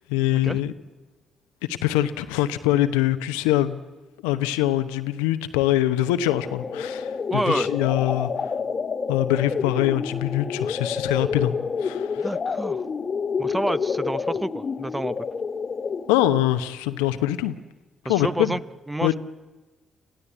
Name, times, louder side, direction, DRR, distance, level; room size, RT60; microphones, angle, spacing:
voice 1, 0.1-0.7 1.7-3.8 4.2-8.5 9.1-11.5 11.8-12.3 16.1-17.6 18.0-18.6 19.0-19.1, left 14 dB, 80° left, 11 dB, 0.9 m, -23 dB
sound 1, 6.3-16.3, left 5 dB, 45° left, 1.1 m, -28 dB
voice 2, 7.3-7.7 12.2-12.8 13.4-15.1 18.0-18.6 18.9-19.1, right 1 dB, 15° right, 16 dB, 0.8 m, -28 dB
27.0 x 15.5 x 8.3 m, 1.2 s
hypercardioid pair, 40°, 0 cm